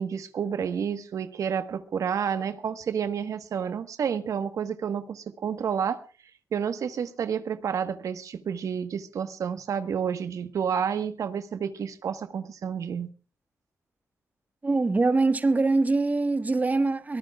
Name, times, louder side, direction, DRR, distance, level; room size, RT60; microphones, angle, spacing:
voice 1, 0.0-6.0 6.5-13.1, right 7 dB, 80° right, 1.2 m, -30 dB
voice 2, 14.6-17.2, right 3 dB, 30° right, 1.3 m, -23 dB
23.0 x 18.5 x 2.3 m
cardioid pair, 90°, 6 cm